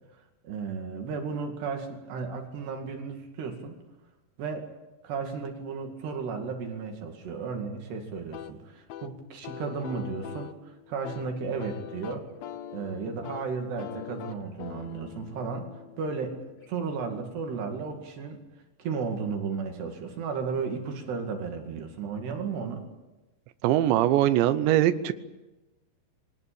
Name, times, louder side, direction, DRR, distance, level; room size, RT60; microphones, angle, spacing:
voice 1, 0.4-3.7 4.4-4.7 5.0-12.3 12.7-15.7 16.0-16.4 16.7-18.4 18.8-22.9, right 5 dB, 70° right, 3 dB, 4.3 m, -34 dB
sound 1, 8.3-16.9, left 10 dB, 75° left, 2.2 m, -43 dB
voice 2, 23.6-25.1, right 13 dB, 90° right, 12 dB, 3.2 m, -22 dB
23.5 x 19.5 x 8.7 m, 1.1 s
omnidirectional pair, 5.0 m